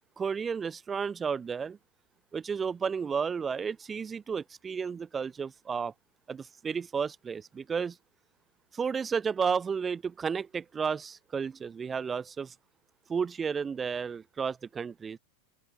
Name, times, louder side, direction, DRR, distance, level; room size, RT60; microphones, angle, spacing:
voice 1, 0.2-1.8 2.3-5.9 6.3-8.0 8.7-12.5 13.1-15.2, right 6 dB, 20° right, 0.5 m, -32 dB
figure-of-eight pair, 90°, 0 cm